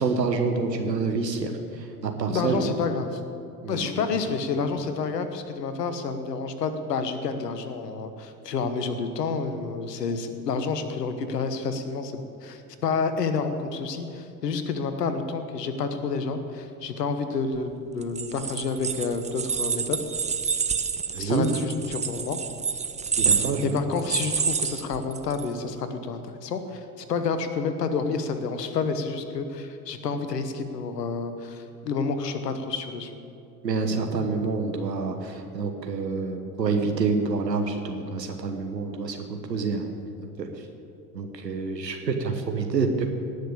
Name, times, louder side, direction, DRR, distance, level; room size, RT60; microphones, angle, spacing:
voice 1, 0.0-2.7 3.6-4.0 21.1-21.5 23.2-23.8 33.6-39.9 40.4-40.5 41.1-43.1, right 4 dB, 85° right, 5 dB, 1.3 m, -27 dB
voice 2, 2.3-3.2 3.7-20.0 21.1-22.4 23.6-33.2, left 4 dB, 75° left, 9 dB, 1.2 m, -29 dB
sound 1, 18.0-25.4, right 6 dB, 15° right, 0.7 m, -28 dB
18.0 x 6.6 x 8.6 m, 2.6 s
figure-of-eight pair, 65°, 48 cm